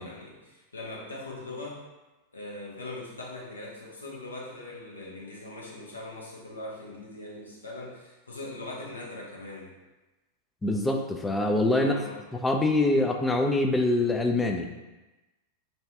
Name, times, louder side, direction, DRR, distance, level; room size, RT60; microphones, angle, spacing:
voice 1, 0.0-1.8 2.3-9.7 11.7-12.2, left 2 dB, 75° left, -4 dB, 0.7 m, -41 dB
voice 2, 10.6-11.9 12.4-14.7, left 2 dB, 10° left, 3 dB, 0.3 m, -24 dB
2.7 x 2.2 x 3.4 m, 1.1 s
figure-of-eight pair, 90°, 0 cm